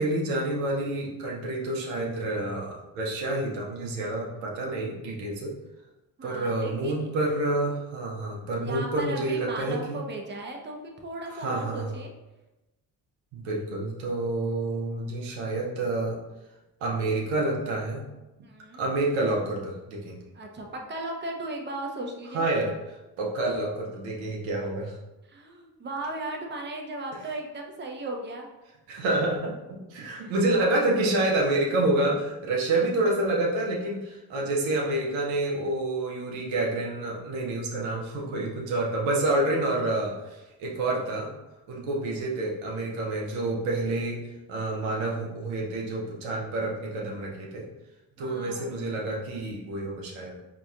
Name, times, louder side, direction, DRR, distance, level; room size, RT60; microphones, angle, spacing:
voice 1, 0.0-5.5 6.2-10.0 11.3-11.9 13.3-16.2 16.8-18.0 18.8-20.2 22.3-22.7 23.2-25.0 28.9-41.3 41.7-47.6 48.2-50.4, right 2 dB, 85° right, -2 dB, 0.8 m, -28 dB
voice 2, 6.2-7.1 8.6-12.1 18.4-18.8 20.3-22.4 25.3-28.5 30.2-30.3 48.2-48.7, right 2 dB, 25° right, 1 dB, 0.7 m, -36 dB
4.0 x 2.9 x 2.4 m, 1.0 s
supercardioid pair, 50°, 45 cm